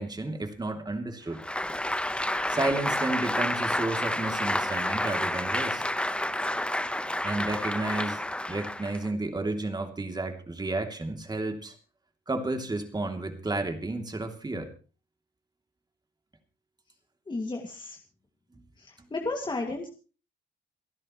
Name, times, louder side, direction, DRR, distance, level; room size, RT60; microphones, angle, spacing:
voice 1, 0.0-1.4 2.5-5.8 7.2-8.2 8.5-11.7 12.3-14.7, right 2 dB, 20° right, 5 dB, 2.9 m, -32 dB
Applause, 1.3-9.1, left 1 dB, 5° left, 1.1 m, -30 dB
voice 2, 17.3-18.0 18.8-19.9, left 2 dB, 25° left, 2 dB, 2.3 m, -33 dB
29.0 x 10.5 x 3.2 m, 0.36 s
cardioid pair, 90°, 20 cm